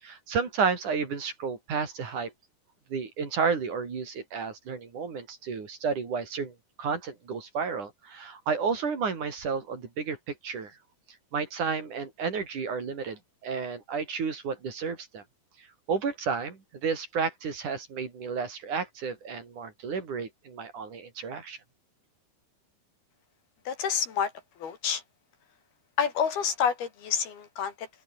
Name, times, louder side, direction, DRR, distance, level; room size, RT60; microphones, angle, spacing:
voice 1, 0.0-2.3 2.9-10.8 11.3-15.2 15.6-21.6, right 5 dB, 55° right, 5.2 m, -32 dB
voice 2, 23.7-24.3 24.6-25.0 26.0-28.0, left 7 dB, 80° left, 5.4 m, -28 dB
open air
omnidirectional pair, 4.4 m